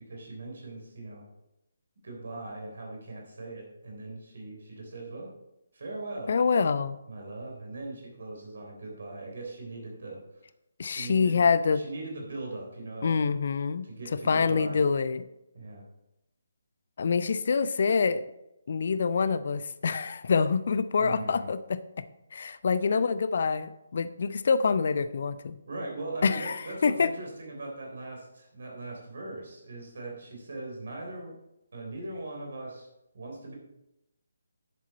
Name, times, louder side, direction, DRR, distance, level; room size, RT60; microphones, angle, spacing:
voice 1, 0.1-1.2 2.0-5.3 5.7-6.4 7.1-10.2 10.9-11.4 11.7-13.3 13.8-14.8 15.5-15.8 21.0-21.5 25.7-31.4 31.7-32.9 33.1-33.5, right 2 dB, 50° right, 0 dB, 3.4 m, -40 dB
voice 2, 6.3-7.0 10.8-11.8 13.0-13.8 14.3-15.2 17.0-18.2 18.7-21.8 22.3-25.6 26.2-27.1, left 5 dB, 45° left, 14 dB, 0.5 m, -26 dB
10.5 x 7.4 x 4.1 m, 0.88 s
figure-of-eight pair, 145°, 0 cm